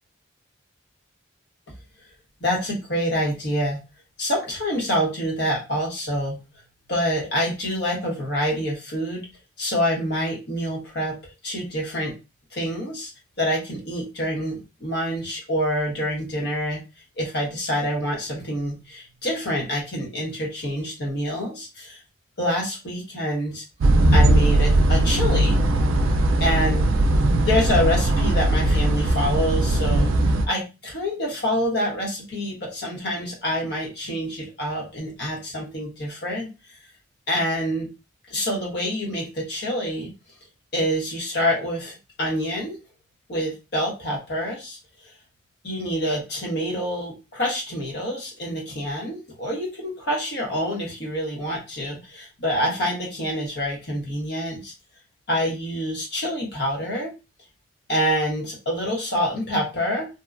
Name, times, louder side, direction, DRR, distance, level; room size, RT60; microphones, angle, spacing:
voice 1, 2.4-3.8 4.2-6.4 6.9-9.3 9.6-11.2 11.4-12.2 12.5-13.1 13.4-16.8 17.2-22.0 22.4-23.6 24.1-25.6 26.4-26.9 27.4-30.1 30.5-36.5 37.3-37.9 38.3-40.1 40.7-42.8 43.3-44.8 45.6-54.7 55.3-57.1 57.9-60.1, equal, 55° left, -2 dB, 1.1 m, -26 dB
sound 1, 23.8-30.5, right 1 dB, 85° right, 0.4 m, -19 dB
2.8 x 2.2 x 2.4 m, 0.28 s
head